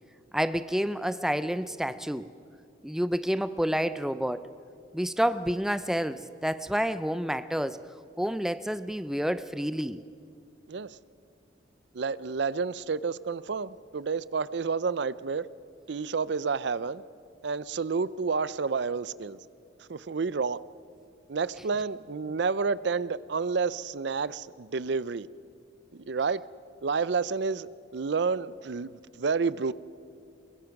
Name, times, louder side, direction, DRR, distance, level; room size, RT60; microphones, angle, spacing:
voice 1, 0.3-2.3 2.8-4.5 4.9-7.8 8.2-10.0, equal, ahead, 13 dB, 0.4 m, -29 dB
voice 2, 11.9-15.5 15.9-17.0 17.4-19.4 19.9-20.6 21.3-25.3 25.9-26.4 26.8-29.7, right 5 dB, 65° right, 18 dB, 0.5 m, -30 dB
23.5 x 22.5 x 5.9 m, 2.4 s
head